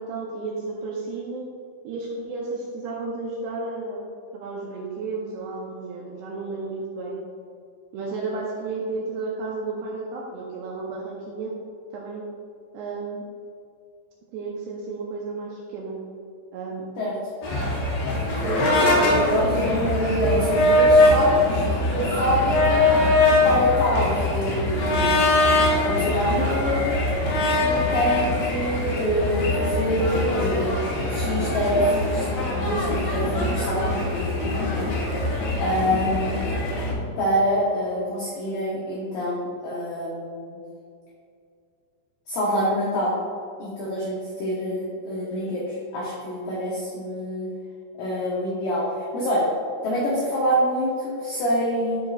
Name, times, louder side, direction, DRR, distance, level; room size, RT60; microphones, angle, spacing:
voice 1, 0.0-1.5 1.8-4.0 4.3-7.2 7.9-11.5 11.9-12.2 12.7-13.2 14.3-16.0 16.5-16.8 18.4-18.6 18.9-20.2, right 3 dB, 85° right, -3 dB, 2.4 m, -32 dB
sound 1, 17.4-36.9, left 2 dB, 70° left, 2.4 m, -22 dB
voice 2, 19.3-22.9 23.3-25.3 25.8-27.0 27.5-30.8 31.1-32.3 32.5-34.9 35.6-36.5 37.2-40.6 42.3-43.1 43.6-47.5 48.0-49.5 49.8-52.0, equal, 85° left, -6 dB, 2.0 m, -26 dB
12.0 x 4.8 x 2.4 m, 2.4 s
omnidirectional pair, 5.6 m